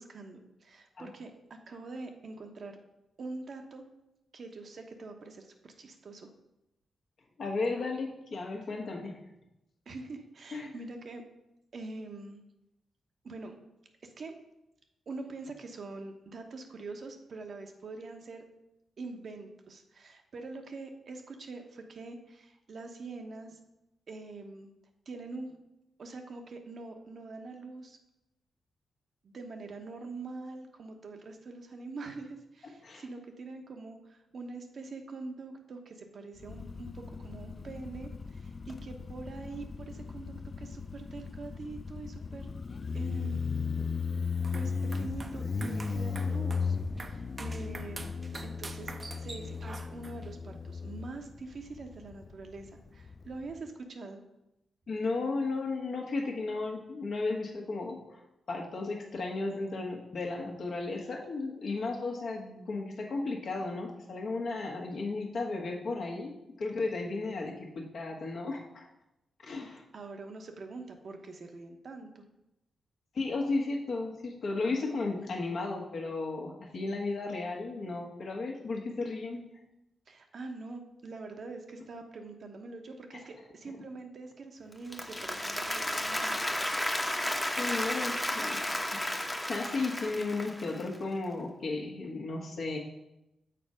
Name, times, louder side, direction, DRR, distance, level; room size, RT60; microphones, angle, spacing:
voice 1, 0.0-2.8 3.2-3.9 4.3-6.3 9.9-11.2 11.7-12.4 13.2-13.6 14.0-14.3 15.1-18.4 19.0-23.6 24.1-24.7 25.1-25.6 26.0-28.0 29.2-42.5 42.9-43.4 44.5-48.1 48.4-54.2 69.6-72.2 80.1-86.5, right 3 dB, 60° right, 5 dB, 1.0 m, -44 dB
voice 2, 7.4-9.2 10.5-10.8 32.8-33.0 54.9-58.2 58.5-68.9 69.4-69.8 73.1-79.4 87.6-88.6 89.5-92.8, left 3 dB, 65° left, 0 dB, 1.4 m, -34 dB
Motorcycle, 36.4-53.6, left 5 dB, 45° left, 0.4 m, -36 dB
sound 1, 44.3-50.3, right 3 dB, 40° right, 0.6 m, -46 dB
Applause, 84.7-91.0, left 1 dB, 10° left, 0.9 m, -33 dB
6.8 x 4.2 x 5.0 m, 0.90 s
cardioid pair, 60°, 0 cm